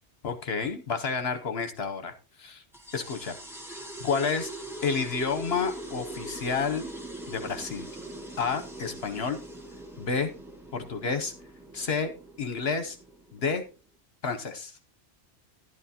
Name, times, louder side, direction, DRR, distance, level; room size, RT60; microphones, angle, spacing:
voice 1, 0.2-2.6 2.9-3.4 3.7-4.5 4.8-6.9 7.3-7.9 8.4-9.4 10.0-10.3 10.7-11.3 11.7-12.1 12.4-13.0 13.3-13.6 14.2-14.7, left 5 dB, 60° left, 8 dB, 1.0 m, -30 dB
sound 1, 2.7-13.8, right 1 dB, ahead, 1.7 m, -42 dB
11.5 x 11.0 x 2.8 m, 0.32 s
omnidirectional pair, 1.2 m